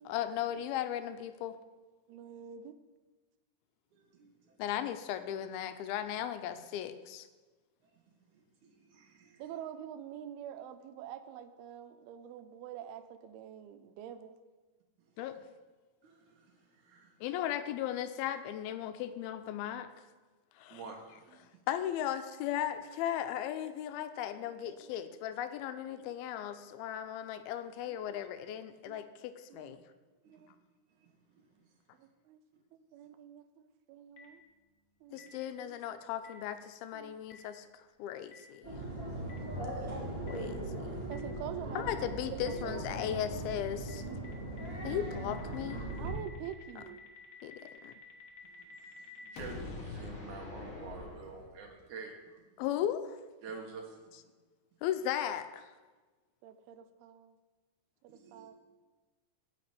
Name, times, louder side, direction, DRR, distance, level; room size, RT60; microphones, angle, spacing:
voice 1, 0.1-1.6 4.6-7.3 15.2-15.4 17.2-19.9 20.6-20.8 21.7-29.8 35.1-38.8 40.3-41.0 41.8-44.0 44.8-45.8 47.4-47.9 52.6-53.2 54.8-55.7, left 10 dB, 85° left, 10 dB, 2.5 m, -37 dB
voice 2, 2.1-2.8 9.4-14.3 20.9-21.0 23.7-23.9 24.6-24.9 25.9-26.1 27.9-28.2 28.8-29.0 29.5-29.8 30.3-30.5 32.0-32.4 32.9-34.4 35.0-35.8 36.9-37.2 40.5-42.9 46.0-47.0 56.4-57.4 58.0-58.6, right 10 dB, 85° right, 10 dB, 2.7 m, -47 dB
voice 3, 3.9-4.6 7.9-8.0 8.3-9.4 16.0-17.1 20.7-21.6 30.2-30.5 31.0-31.5 32.5-32.6 35.1-35.2 39.6-40.4 48.4-52.4 53.4-54.3 58.1-58.5, right 4 dB, 60° right, 1 dB, 2.4 m, -49 dB
Boom, 34.2-34.3 35.2-35.3 36.2-36.3 37.3-37.4 38.3-38.4 39.3-39.4 40.3-40.4 41.1-41.2 41.9-42.0 42.5-42.6 43.0-43.1 43.5-43.6 43.9-44.0 44.2-51.8, left 3 dB, 65° left, 1.3 m, -47 dB
sound 1, 38.6-46.1, right 1 dB, 15° right, 2.6 m, -39 dB
9.4 x 5.8 x 8.2 m, 1.3 s
omnidirectional pair, 4.4 m